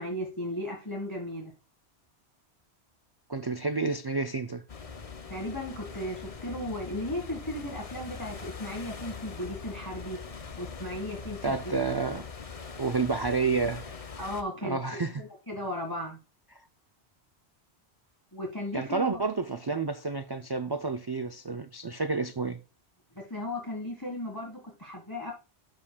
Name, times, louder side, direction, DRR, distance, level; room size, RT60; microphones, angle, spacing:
voice 1, 0.0-1.5 5.3-10.2 10.6-11.6 14.2-16.2 18.3-19.2 23.2-25.3, left 1 dB, 20° left, 1.9 m, -36 dB
voice 2, 3.3-4.6 11.4-12.2 12.8-13.8 14.6-15.2 18.7-22.6, right 4 dB, 35° right, 0.4 m, -30 dB
sound 1, 4.7-14.4, left 5 dB, 35° left, 0.9 m, -42 dB
12.5 x 5.1 x 2.3 m
omnidirectional pair, 1.1 m